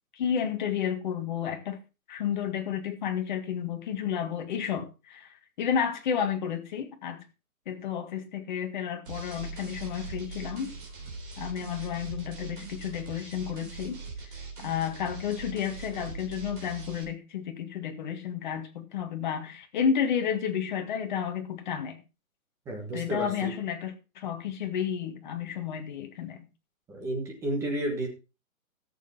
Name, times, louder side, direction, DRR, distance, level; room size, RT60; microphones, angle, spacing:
voice 1, 0.1-1.8 2.1-7.2 7.6-10.7 11.4-14.0 14.3-14.4 14.6-22.0 22.9-26.4, left 8 dB, 35° left, 1.8 m, -31 dB
sound 1, 9.1-17.0, right 4 dB, 35° right, 3.6 m, -41 dB
voice 2, 22.6-23.6 26.9-28.1, right 1 dB, 5° right, 1.3 m, -32 dB
13.5 x 7.9 x 4.1 m
hypercardioid pair, 165°, 43 cm